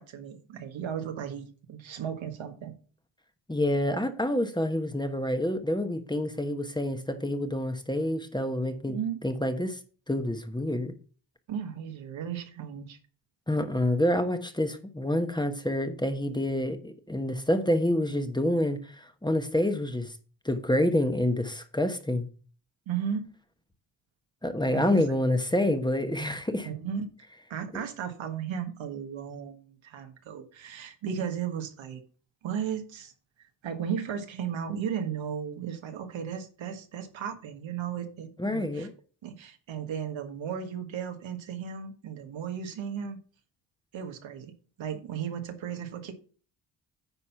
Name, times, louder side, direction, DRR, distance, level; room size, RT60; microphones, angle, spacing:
voice 1, 0.0-2.7 8.9-9.2 11.5-13.0 22.9-23.3 24.7-25.1 26.6-27.1 27.5-32.0 32.4-33.1 33.6-38.9 39.2-43.2 43.9-44.5 44.8-46.1, right 8 dB, 80° right, 1.6 m, -35 dB
voice 2, 3.5-9.0 9.2-9.8 10.1-10.9 13.5-20.1 20.4-22.3 24.4-26.7 38.4-38.9, left 1 dB, 10° left, 1.2 m, -27 dB
9.8 x 4.2 x 5.8 m
cardioid pair, 70°, 45 cm